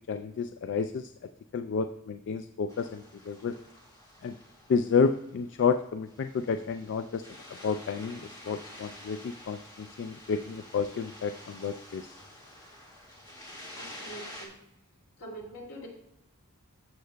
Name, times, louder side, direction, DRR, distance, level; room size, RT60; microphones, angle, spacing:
voice 1, 0.1-1.1 1.5-3.6 4.2-4.4 4.7-7.2 7.6-12.1, left 5 dB, 55° left, 9 dB, 0.3 m, -30 dB
sound 1, 2.7-14.5, left 1 dB, 20° left, 1.8 m, -49 dB
voice 2, 13.8-14.6 15.2-15.9, right 1 dB, 75° left, -2 dB, 2.5 m, -44 dB
13.0 x 6.8 x 2.2 m, 0.82 s
head